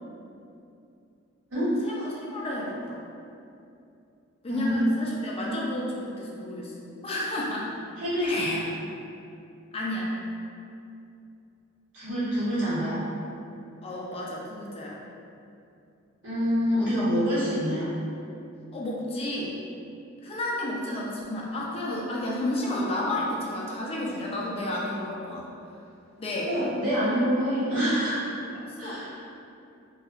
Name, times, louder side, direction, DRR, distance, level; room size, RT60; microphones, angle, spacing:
voice 1, 1.8-3.0 4.4-6.7 7.0-7.7 8.2-8.6 9.7-10.2 13.8-15.0 18.7-19.5 20.2-25.5 26.2-26.5 28.5-29.0, left 1 dB, 30° left, -4 dB, 0.4 m, -31 dB
voice 2, 8.0-8.6 11.9-13.0 16.2-17.9 26.5-28.3 28.8-29.3, equal, 85° right, -13 dB, 1.4 m, -26 dB
2.7 x 2.4 x 2.4 m, 2.6 s
head